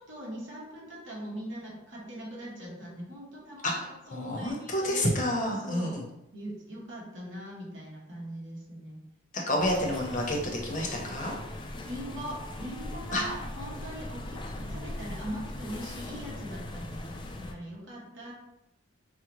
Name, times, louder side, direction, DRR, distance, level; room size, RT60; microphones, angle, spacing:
voice 1, 0.0-5.1 5.6-6.0 6.3-9.0 9.5-9.9 11.8-18.3, equal, 65° right, -3 dB, 1.1 m, -41 dB
voice 2, 3.6-6.0 9.5-11.3 13.1-13.2, left 1 dB, 40° left, 0 dB, 0.7 m, -29 dB
sound 1, 9.6-17.5, left 1 dB, 25° left, 0.3 m, -40 dB
4.7 x 2.1 x 2.9 m, 0.87 s
head